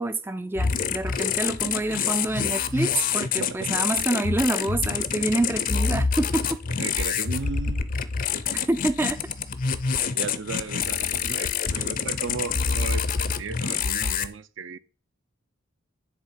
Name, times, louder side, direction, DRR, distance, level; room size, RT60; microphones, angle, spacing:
voice 1, 0.0-6.5 8.7-9.2, right 2 dB, 10° right, 0.3 m, -27 dB
sound 1, 0.5-14.3, left 6 dB, 40° left, 0.5 m, -27 dB
voice 2, 6.7-7.9 9.9-14.8, right 4 dB, 60° right, 0.5 m, -35 dB
10.0 x 3.5 x 5.7 m
head